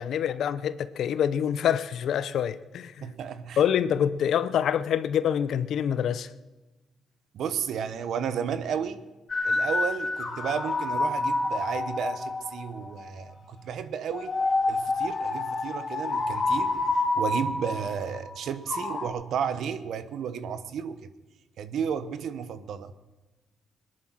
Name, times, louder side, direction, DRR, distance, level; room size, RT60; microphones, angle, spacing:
voice 1, 0.0-2.9 3.6-6.3, left 9 dB, 70° left, 0.7 m, -26 dB
voice 2, 3.0-3.6 7.3-9.1 9.4-14.3 14.7-21.1 21.6-22.9, right 7 dB, 70° right, 1.0 m, -33 dB
sound 1, 9.3-13.1 14.1-19.1, left 2 dB, 40° left, 3.0 m, -28 dB
21.0 x 10.5 x 6.2 m
cardioid pair, 90°, 0 cm